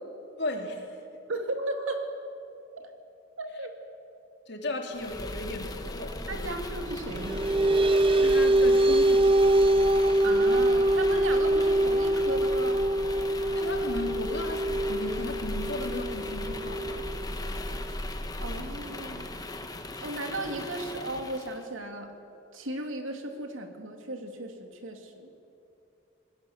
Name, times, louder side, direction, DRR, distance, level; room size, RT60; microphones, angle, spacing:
voice 1, 0.4-0.9 4.5-6.5 8.1-9.3 13.5-17.0, left 2 dB, 55° left, 2 dB, 3.0 m, -35 dB
voice 2, 1.3-2.1 3.4-3.8 6.3-7.4 10.2-12.8 18.4-19.3 20.0-22.1 22.5-25.3, right 2 dB, 85° right, 4 dB, 2.7 m, -35 dB
sound 1, 4.9-21.6, left 1 dB, 20° left, 1.4 m, -37 dB
sound 2, 7.0-18.0, right 1 dB, 25° right, 0.6 m, -24 dB
27.5 x 20.5 x 7.3 m, 2.7 s
head